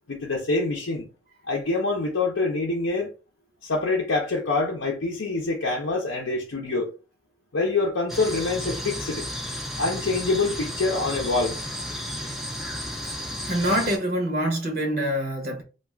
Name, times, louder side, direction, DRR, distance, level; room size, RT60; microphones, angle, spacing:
voice 1, 0.1-1.1 1.5-3.1 3.6-6.9 7.5-9.3 9.8-11.6, left 3 dB, 80° left, 0.6 m, -25 dB
sound 1, 8.1-14.0, equal, ahead, 0.3 m, -33 dB
voice 2, 13.5-15.6, equal, 50° right, 0.6 m, -25 dB
2.3 x 2.3 x 3.2 m
head